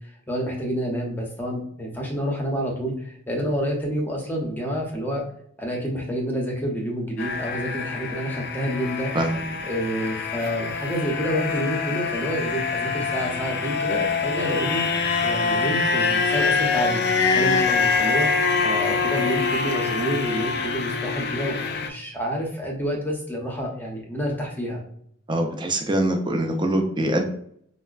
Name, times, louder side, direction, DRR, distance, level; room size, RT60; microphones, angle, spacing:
voice 1, 0.3-5.2 5.6-9.1 9.7-14.9 15.2-17.0 17.3-24.8, equal, 10° left, -1 dB, 0.7 m, -28 dB
sound 1, 7.2-21.9, left 4 dB, 55° left, 0.4 m, -25 dB
voice 2, 25.3-27.3, right 1 dB, 25° right, 3 dB, 0.5 m, -23 dB
4.8 x 2.1 x 2.4 m, 0.65 s
head